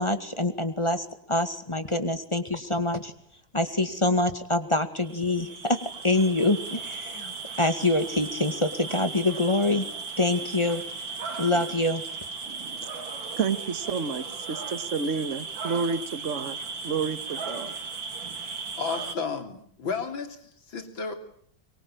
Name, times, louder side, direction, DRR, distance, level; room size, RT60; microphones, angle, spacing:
voice 1, 0.0-3.1 3.5-5.8 6.0-9.8 10.2-10.8 11.4-12.0, left 2 dB, 15° left, 9 dB, 2.1 m, -25 dB
sound 1, 5.0-19.2, right 4 dB, 75° right, 3.3 m, -36 dB
voice 2, 12.4-16.6 16.8-17.7, right 5 dB, 45° right, 12 dB, 1.6 m, -31 dB
voice 3, 18.8-21.2, left 5 dB, 80° left, 7 dB, 4.1 m, -33 dB
24.0 x 24.0 x 9.0 m, 0.64 s
omnidirectional pair, 2.1 m